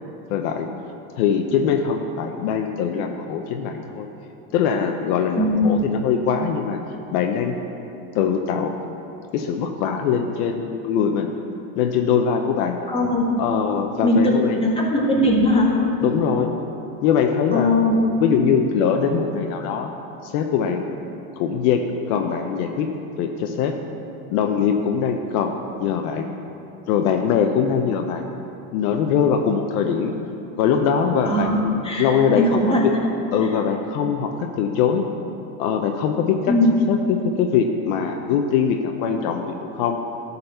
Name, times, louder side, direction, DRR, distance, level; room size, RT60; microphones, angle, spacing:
voice 1, 0.3-0.7 1.2-4.1 4.5-6.8 7.1-7.5 8.1-8.7 9.3-11.3 11.8-12.8 13.4-14.6 16.0-16.5 17.0-17.7 18.2-19.9 20.2-20.9 21.4-21.8 22.1-22.9 23.2-23.7 24.3-26.3 26.9-28.3 28.7-30.1 30.6-31.7 32.0-32.9 33.3-35.0 35.6-36.5 36.9-40.0, left 7 dB, 65° left, 4 dB, 0.8 m, -22 dB
voice 2, 5.4-5.9 12.9-13.3 14.0-15.7 17.5-18.0 31.2-31.6 31.8-32.1 32.3-32.8 36.5-36.7, left 1 dB, 10° left, -4 dB, 1.9 m, -19 dB
11.5 x 4.2 x 6.7 m, 2.8 s
supercardioid pair, 115°, 45 cm